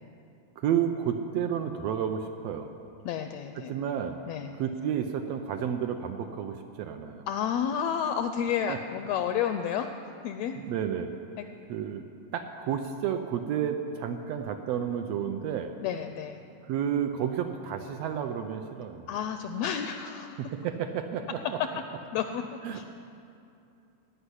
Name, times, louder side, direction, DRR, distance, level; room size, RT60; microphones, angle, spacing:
voice 1, 0.6-2.7 3.6-4.2 4.6-7.3 8.7-8.8 10.6-11.1 11.7-12.0 12.3-15.7 16.7-19.1 20.4-21.6 22.6-22.9, right 8 dB, 75° right, 6 dB, 1.6 m, -31 dB
voice 2, 3.0-3.7 4.3-4.5 7.3-9.9 10.2-10.5 11.4-11.5 15.8-16.4 19.1-20.4 21.6-21.7 22.1-22.9, left 8 dB, 80° left, 8 dB, 1.6 m, -31 dB
16.0 x 5.4 x 9.9 m, 2.6 s
omnidirectional pair, 3.3 m